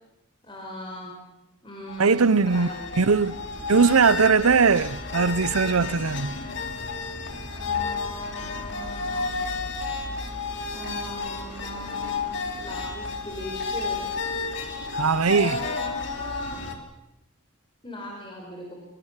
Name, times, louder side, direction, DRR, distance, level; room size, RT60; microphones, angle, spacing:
voice 1, 0.4-1.1 1.6-2.3 2.5-2.9 7.5-9.3 10.7-14.0 15.4-16.6 17.8-18.7, left 1 dB, 25° left, 4.7 m, -39 dB
sound 1, 1.9-16.7, left 4 dB, 55° left, 2.7 m, -32 dB
voice 2, 2.0-2.7 3.0-3.3 3.7-6.3 14.9-15.6, right 5 dB, 90° right, 0.8 m, -20 dB
24.0 x 22.5 x 7.4 m
head